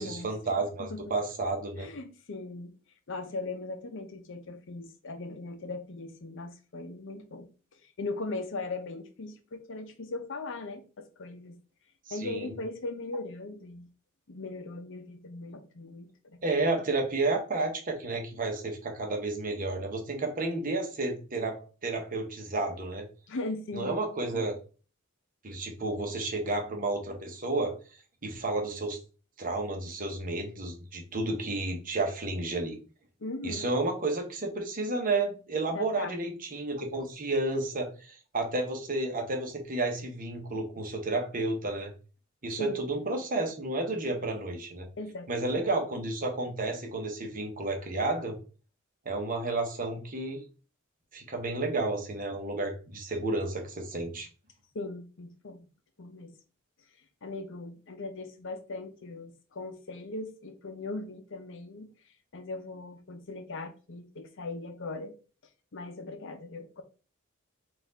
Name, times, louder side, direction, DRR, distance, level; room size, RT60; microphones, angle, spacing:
voice 1, 0.0-1.9 12.1-12.5 16.4-23.1 23.7-24.6 25.4-27.8 28.2-29.0 29.4-32.8 33.4-41.9 42.4-44.9 45.3-48.4 49.0-50.4 51.1-54.3, right 2 dB, 40° right, 1.0 m, -31 dB
voice 2, 1.8-2.7 3.1-7.5 7.8-11.6 12.1-13.9 14.3-16.8 23.3-24.0 33.2-33.7 35.7-36.2 42.6-42.8 45.0-45.7 54.7-55.7 56.0-56.3 57.2-61.9 62.3-65.1 65.7-66.8, left 2 dB, 60° left, 0.6 m, -39 dB
4.1 x 2.5 x 3.9 m
head